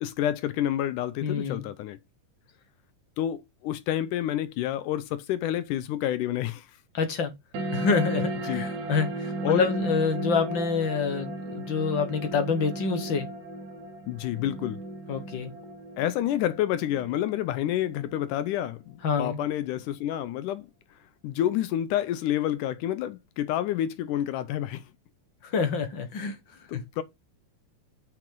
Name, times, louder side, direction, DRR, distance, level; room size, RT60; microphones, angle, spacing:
voice 1, 0.0-2.0 3.2-6.7 8.5-8.7 9.4-9.7 14.1-14.8 16.0-20.6 21.2-24.8 26.7-27.0, left 12 dB, 80° left, 2.1 m, -29 dB
voice 2, 1.2-1.7 6.9-7.3 7.7-13.3 15.1-15.5 19.0-19.4 25.4-26.3 26.7-26.8, left 5 dB, 55° left, 1.4 m, -27 dB
sound 1, 7.5-18.5, right 2 dB, 65° right, 2.7 m, -35 dB
7.4 x 5.9 x 3.7 m
omnidirectional pair, 3.8 m